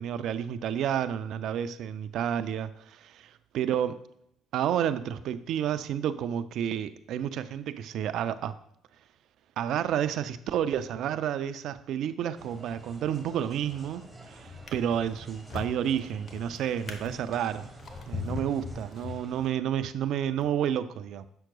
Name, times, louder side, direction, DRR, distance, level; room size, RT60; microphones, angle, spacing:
voice 1, 0.0-4.0 4.5-8.6 9.6-17.7 18.1-21.3, right 9 dB, 65° right, 0.4 m, -30 dB
sound 1, 12.4-19.5, right 2 dB, 15° right, 1.2 m, -50 dB
Drawer open or close, 13.5-13.9 14.5-19.6 20.3-20.5, left 4 dB, 45° left, 1.0 m, -40 dB
7.7 x 5.8 x 2.3 m
hypercardioid pair, 55°, 0 cm